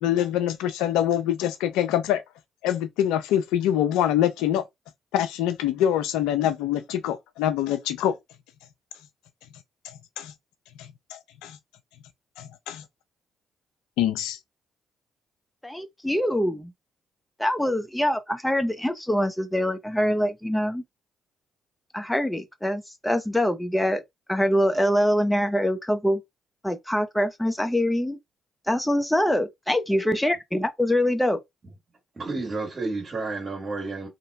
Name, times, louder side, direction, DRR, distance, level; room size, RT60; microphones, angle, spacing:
voice 1, 0.0-2.2 2.6-4.6 5.1-8.2 9.8-10.3 10.8-11.6 12.4-12.8 14.0-14.4, left 11 dB, 80° left, 0.4 m, -25 dB
voice 2, 15.6-16.7 17.4-20.8 21.9-24.0 24.3-26.2 26.6-28.2 28.7-31.4, equal, 10° left, 0.7 m, -24 dB
voice 3, 32.1-34.1, right 3 dB, 45° right, 1.4 m, -31 dB
2.8 x 2.6 x 2.3 m
hypercardioid pair, 50°, 0 cm